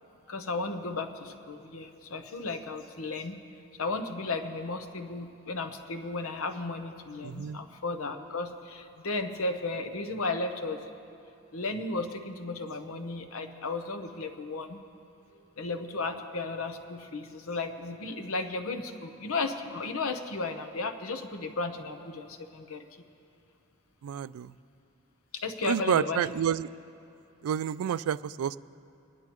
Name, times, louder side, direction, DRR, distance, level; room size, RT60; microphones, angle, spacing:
voice 1, 0.3-3.4 3.8-10.8 11.5-14.8 15.6-22.8 25.4-26.2, left 3 dB, 70° left, 7 dB, 0.9 m, -34 dB
voice 2, 7.2-7.6 24.0-24.5 25.6-26.7 27.4-28.6, right 9 dB, 75° right, 17 dB, 0.3 m, -29 dB
25.0 x 10.5 x 3.0 m, 2.7 s
head